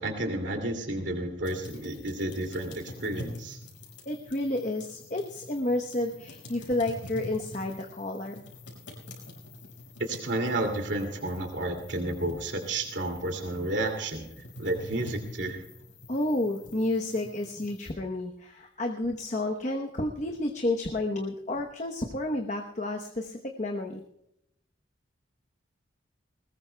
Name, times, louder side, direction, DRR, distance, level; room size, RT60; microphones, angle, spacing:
voice 1, 0.0-3.6 10.0-14.3 14.6-15.6, right 1 dB, 70° right, 3 dB, 2.5 m, -31 dB
sound 1, 1.4-17.9, left 1 dB, 80° left, 5.2 m, -46 dB
voice 2, 4.0-8.4 16.1-24.0, left 1 dB, 40° left, 3 dB, 0.9 m, -31 dB
21.0 x 19.5 x 2.2 m, 0.79 s
head